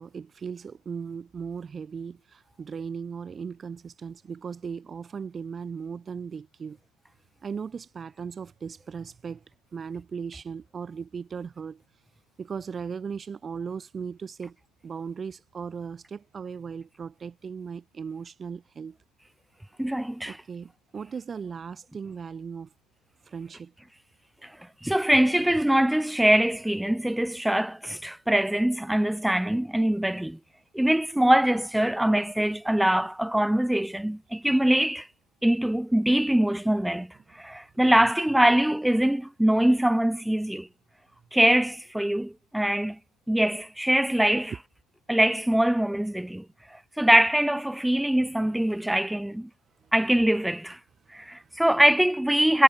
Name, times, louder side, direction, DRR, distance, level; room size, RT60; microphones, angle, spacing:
voice 1, 0.0-6.8 7.4-9.4 9.7-11.8 12.4-14.6 14.8-19.0 20.3-22.7 23.3-23.7 51.4-51.5, right 6 dB, 30° right, 1.7 m, -37 dB
voice 2, 19.8-20.4 24.8-30.4 30.7-35.1 35.4-40.7 41.3-43.0 43.3-44.5 45.1-46.4 47.0-49.5 49.9-50.8 51.1-52.6, right 1 dB, 5° right, 0.4 m, -23 dB
supercardioid pair, 90°, 0 cm